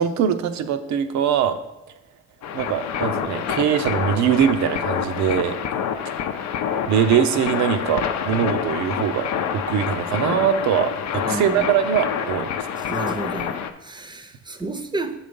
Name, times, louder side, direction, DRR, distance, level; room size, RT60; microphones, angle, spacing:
voice 1, 0.0-1.6 2.5-5.6 6.9-12.7, right 9 dB, 70° right, 0.6 m, -22 dB
sound 1, 2.4-13.7, left 8 dB, 70° left, 0.6 m, -27 dB
voice 2, 11.2-11.7 12.9-15.2, right 2 dB, 15° right, 0.7 m, -31 dB
6.5 x 4.0 x 5.2 m
supercardioid pair, 80°, 29 cm